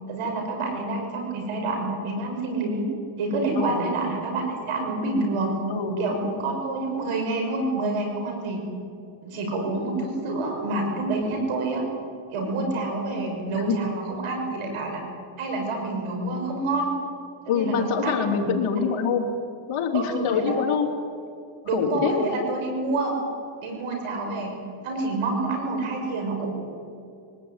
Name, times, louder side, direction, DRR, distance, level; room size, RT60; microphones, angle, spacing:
voice 1, 0.1-2.8 3.2-5.6 6.0-8.6 9.2-11.9 12.3-15.0 15.4-16.9 17.5-18.2 19.9-20.5 21.6-23.2 23.6-24.6 24.8-26.5, right 2 dB, 90° right, 3 dB, 6.2 m, -28 dB
voice 2, 3.6-3.9 5.7-6.0 13.5-13.8 17.5-19.3 19.7-20.9 21.7-22.2, left 6 dB, 80° left, 1 dB, 3.8 m, -25 dB
23.5 x 19.0 x 9.3 m, 2.5 s
cardioid pair, 80°, 49 cm